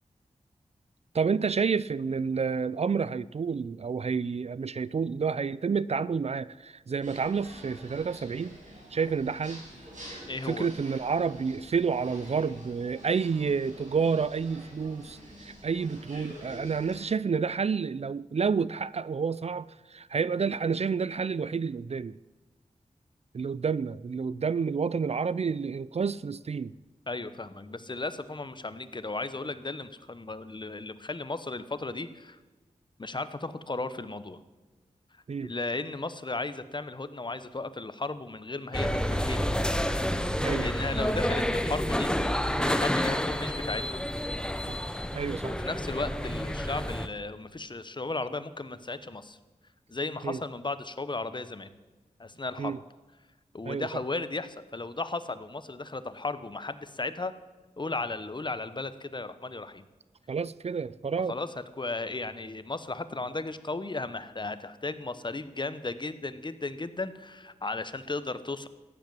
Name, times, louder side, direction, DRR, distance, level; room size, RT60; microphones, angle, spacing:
voice 1, 1.1-8.6 8.9-9.6 10.4-22.2 23.3-26.7 35.3-35.5 40.4-40.7 44.7-44.8 45.1-45.5 50.2-50.4 52.6-52.8 53.6-53.9 60.3-61.3, right 5 dB, 55° right, 19 dB, 0.4 m, -29 dB
sound 1, 7.0-17.1, equal, 75° right, 6.2 m, -48 dB
voice 2, 10.3-10.7 27.1-32.4 33.0-34.4 35.4-39.5 40.3-42.1 42.6-44.0 45.5-49.4 49.9-51.7 52.2-52.8 53.5-57.3 57.8-59.9 61.3-68.7, left 3 dB, 35° left, 13 dB, 1.0 m, -35 dB
sound 2, 38.7-47.1, equal, 5° left, 0.9 m, -29 dB
15.0 x 10.5 x 7.5 m, 1.2 s
wide cardioid pair, 65°, 13 cm